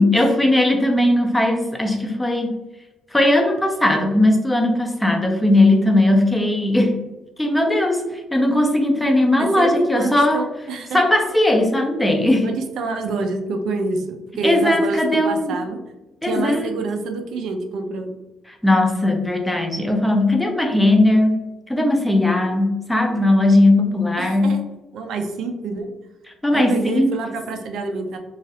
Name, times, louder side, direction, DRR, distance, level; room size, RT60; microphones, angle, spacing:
voice 1, 0.0-2.5 3.1-7.0 7.4-10.4 10.9-12.5 14.4-15.6 16.2-16.7 18.5-21.3 21.7-24.6 26.4-27.1, left 1 dB, 5° left, 3 dB, 0.4 m, -18 dB
voice 2, 9.4-11.0 12.4-15.8 16.2-18.2 24.2-24.6 24.9-25.9 26.5-28.2, right 3 dB, 75° right, 4 dB, 0.4 m, -27 dB
3.0 x 2.3 x 2.7 m, 1.0 s
cardioid pair, 155°, 0 cm